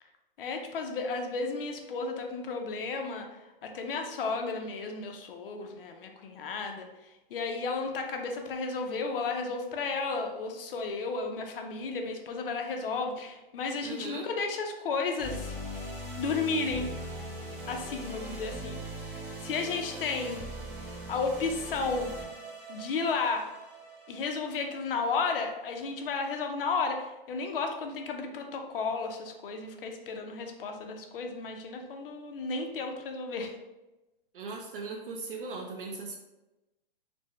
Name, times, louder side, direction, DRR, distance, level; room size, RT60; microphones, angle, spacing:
voice 1, 0.4-3.3 3.6-6.9 7.3-15.6 16.2-16.9 17.7-18.8 19.4-20.4 21.1-22.1 22.7-23.5 24.1-33.5, left 4 dB, 65° left, 4 dB, 0.7 m, -33 dB
voice 2, 13.8-14.3 34.3-36.2, right 3 dB, 60° right, 1 dB, 0.6 m, -38 dB
sound 1, 15.2-25.6, equal, 10° right, 0.6 m, -41 dB
4.3 x 2.2 x 3.0 m, 1.0 s
hypercardioid pair, 160°, 30 cm